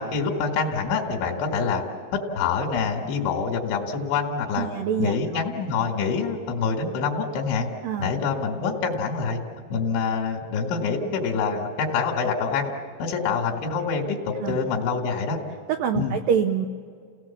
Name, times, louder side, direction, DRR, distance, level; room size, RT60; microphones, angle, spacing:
voice 1, 0.0-1.8 2.1-4.7 5.0-7.7 8.0-9.4 9.7-12.7 13.0-15.4 15.9-16.2, left 5 dB, 85° left, 2 dB, 4.3 m, -26 dB
voice 2, 4.6-5.2 7.8-8.1 14.4-14.6 15.7-16.7, right 8 dB, 85° right, 6 dB, 1.9 m, -25 dB
30.0 x 18.0 x 7.2 m, 2.2 s
omnidirectional pair, 5.2 m